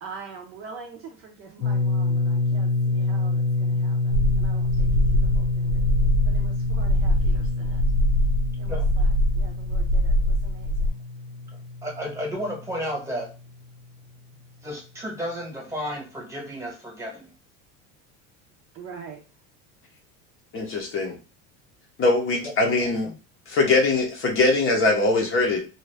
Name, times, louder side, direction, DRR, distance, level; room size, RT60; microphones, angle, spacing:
voice 1, 0.0-5.9 6.3-7.8 8.6-11.0 18.7-19.2, right 5 dB, 35° right, 2 dB, 0.5 m, -44 dB
sound 1, 1.6-13.3, left 3 dB, 70° left, 0.6 m, -27 dB
sound 2, 4.1-10.9, equal, 80° right, 0.6 m, -22 dB
voice 2, 11.8-13.3 14.6-17.3 22.4-22.5 23.0-23.1, equal, 10° right, -1 dB, 1.1 m, -32 dB
voice 3, 20.5-21.2 22.0-23.1 23.5-25.6, left 3 dB, 35° left, 2 dB, 0.7 m, -22 dB
2.6 x 2.3 x 3.2 m, 0.33 s
supercardioid pair, 130°, 37 cm